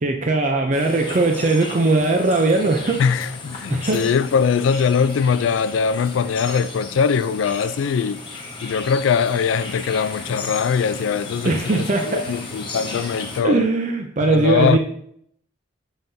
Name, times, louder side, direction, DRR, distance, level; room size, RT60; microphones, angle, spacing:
voice 1, 0.0-3.0 3.7-4.0 11.4-12.2 13.4-14.8, right 2 dB, 40° right, 0.5 m, -19 dB
sound 1, 0.7-13.4, left 3 dB, 25° left, 1.0 m, -35 dB
voice 2, 3.0-8.2 8.6-13.7 14.2-14.8, left 6 dB, 80° left, 0.3 m, -21 dB
7.1 x 5.5 x 2.7 m
head